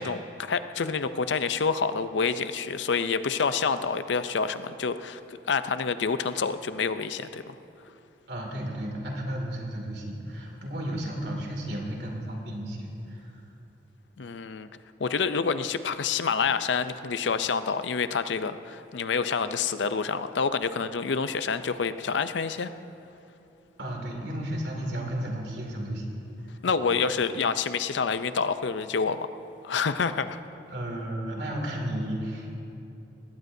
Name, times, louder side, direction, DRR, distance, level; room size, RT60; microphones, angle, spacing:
voice 1, 0.0-7.6 14.2-14.7 15.0-22.7 26.6-29.3 29.6-30.4, left 5 dB, 85° left, 11 dB, 0.5 m, -28 dB
voice 2, 8.3-13.3 23.8-26.2 30.7-32.5, right 1 dB, 70° right, 0 dB, 2.5 m, -33 dB
20.0 x 17.0 x 2.7 m, 2.8 s
head